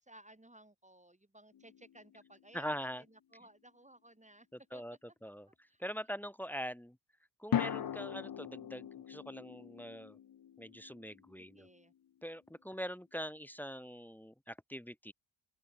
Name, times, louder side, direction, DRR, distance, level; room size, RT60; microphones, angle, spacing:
voice 1, 0.0-4.8 5.7-5.8 11.4-11.9, right 1 dB, 15° right, 4.4 m, -58 dB
sound 1, 1.5-2.6 7.5-11.8, left 9 dB, 45° left, 0.6 m, -40 dB
voice 2, 2.5-3.0 4.5-5.0 5.2-7.0 7.4-10.2 10.6-11.7 12.2-15.1, equal, 5° left, 0.8 m, -43 dB
open air
wide cardioid pair, 110°, 49 cm